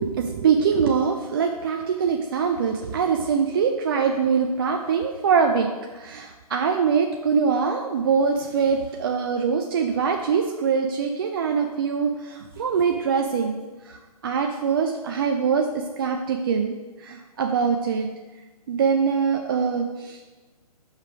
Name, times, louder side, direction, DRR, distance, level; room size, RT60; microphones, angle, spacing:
voice 1, 0.0-5.7 5.9-13.6 13.9-16.7 17.0-18.1 18.7-20.2, right 6 dB, 35° right, 3 dB, 0.5 m, -23 dB
5.6 x 5.0 x 6.0 m, 1.3 s
figure-of-eight pair, 135°, 20 cm